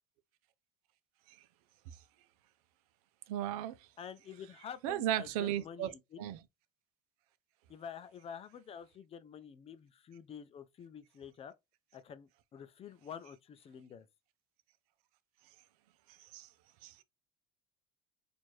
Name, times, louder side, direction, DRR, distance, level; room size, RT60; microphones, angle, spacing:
voice 1, 3.3-3.8 4.8-5.9 6.2-6.4 16.3-16.5 16.8-16.9, right 12 dB, 85° right, 0.6 m, -34 dB
voice 2, 4.0-6.3 7.7-11.5 11.9-14.1, left 8 dB, 35° left, 0.5 m, -48 dB
4.4 x 2.6 x 3.0 m
supercardioid pair, 115°, 18 cm